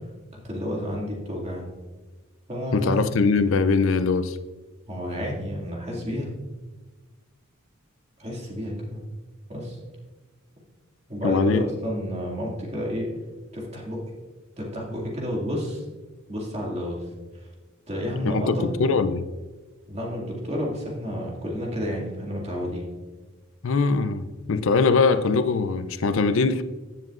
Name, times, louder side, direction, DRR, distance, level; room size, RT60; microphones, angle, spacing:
voice 1, 0.3-1.7 2.5-2.9 4.9-6.3 8.2-9.0 9.5-9.8 11.1-13.1 13.5-14.0 14.6-15.8 16.3-17.0 17.3-17.4 17.9-18.7 19.9-22.9, equal, 30° right, 2.2 m, -30 dB
voice 2, 2.7-4.4 11.2-11.6 18.2-19.3 23.6-26.6, left 4 dB, 65° left, 0.5 m, -22 dB
15.0 x 7.4 x 2.5 m
head